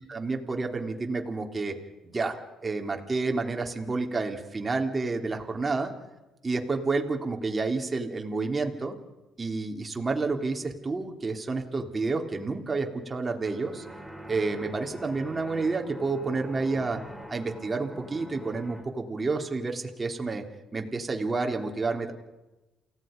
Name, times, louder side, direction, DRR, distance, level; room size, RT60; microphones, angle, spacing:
voice 1, 0.1-1.7 2.0-2.4 2.6-5.9 6.4-9.0 9.4-13.9 14.3-17.0 17.3-20.4 20.7-22.1, right 3 dB, 30° right, 3 dB, 3.4 m, -29 dB
sound 1, 13.4-18.8, right 1 dB, 5° left, 4.2 m, -44 dB
29.0 x 17.0 x 5.3 m, 1.0 s
hypercardioid pair, 60°, 0 cm